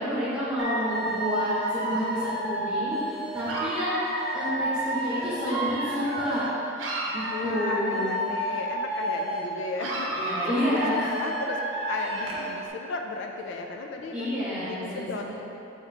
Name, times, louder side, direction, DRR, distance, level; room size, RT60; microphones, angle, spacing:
voice 1, 0.0-4.0 4.3-6.4 7.1-8.1 10.1-11.1 14.1-15.3, equal, 10° right, -12 dB, 0.9 m, -29 dB
Dog / Alarm, 0.6-6.5 6.8-9.5 9.8-12.5, right 1 dB, 75° right, 0.7 m, -30 dB
voice 2, 7.3-11.6 11.9-15.3, left 3 dB, 65° left, 3 dB, 0.3 m, -35 dB
4.4 x 2.9 x 4.0 m, 2.9 s
head